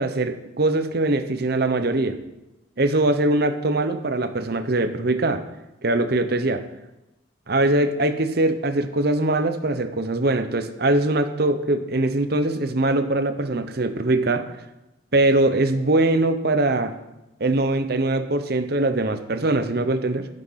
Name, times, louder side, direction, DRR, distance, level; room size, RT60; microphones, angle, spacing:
voice 1, 0.0-2.2 2.8-5.4 5.8-6.6 7.5-14.4 15.1-16.9 17.4-20.3, right 2 dB, 55° right, 10 dB, 0.9 m, -22 dB
10.5 x 7.9 x 5.7 m, 0.95 s
head